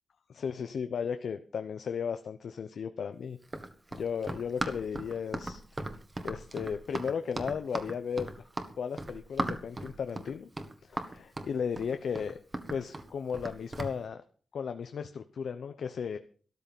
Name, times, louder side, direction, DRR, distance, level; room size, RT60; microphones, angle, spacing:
voice 1, 0.3-3.4 3.9-5.6 6.2-8.4 8.8-10.5 10.8-12.4 12.7-14.2 14.5-16.2, left 6 dB, 90° left, 9 dB, 0.9 m, -35 dB
Run, 3.4-14.0, right 2 dB, 25° right, 1.5 m, -38 dB
13.5 x 12.5 x 5.4 m, 0.42 s
wide cardioid pair, 155°, 0 cm